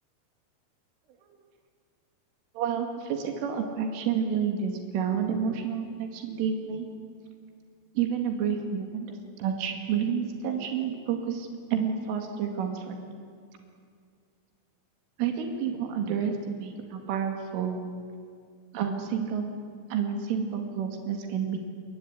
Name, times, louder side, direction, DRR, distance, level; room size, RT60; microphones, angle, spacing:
voice 1, 2.6-6.9 8.0-13.0 15.2-17.8 18.7-19.5 19.9-21.6, right 7 dB, 90° right, 4 dB, 4.7 m, -29 dB
27.0 x 22.0 x 9.8 m, 2.2 s
omnidirectional pair, 5.6 m